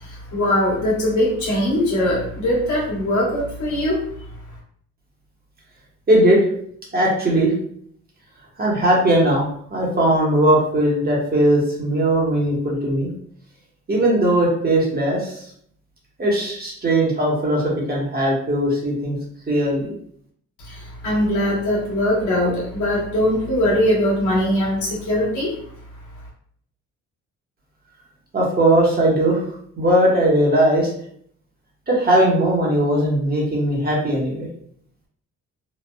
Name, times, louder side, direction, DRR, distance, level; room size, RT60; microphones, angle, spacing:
voice 1, 0.0-4.0 20.6-25.5, left 1 dB, 75° left, -4 dB, 1.2 m, -21 dB
voice 2, 6.1-6.4 6.9-7.5 8.6-9.4 9.7-13.1 13.9-15.5 16.2-19.2 19.5-19.9 28.3-29.4 29.8-30.9 31.9-34.5, right 1 dB, 30° right, -3 dB, 1.0 m, -19 dB
3.0 x 2.3 x 2.2 m, 0.64 s
cardioid pair, 90°, 30 cm